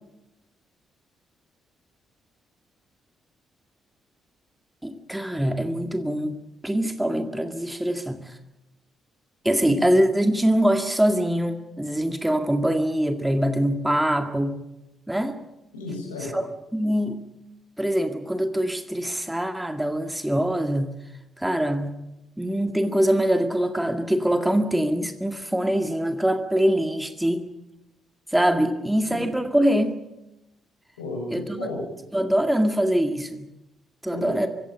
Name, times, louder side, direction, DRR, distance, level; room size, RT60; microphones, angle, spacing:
voice 1, 4.8-6.4 6.6-8.4 9.4-14.6 15.1-15.4 16.2-17.2 17.8-21.0 21.4-21.9 22.4-27.5 28.3-29.9 31.3-31.5 32.1-33.5 34.0-34.5, equal, 10° right, 7 dB, 2.0 m, -23 dB
voice 2, 15.7-16.3 29.0-29.2 31.0-31.8 34.1-34.3, left 2 dB, 75° left, 1 dB, 6.8 m, -33 dB
24.5 x 16.0 x 8.7 m, 0.93 s
figure-of-eight pair, 40°, 0 cm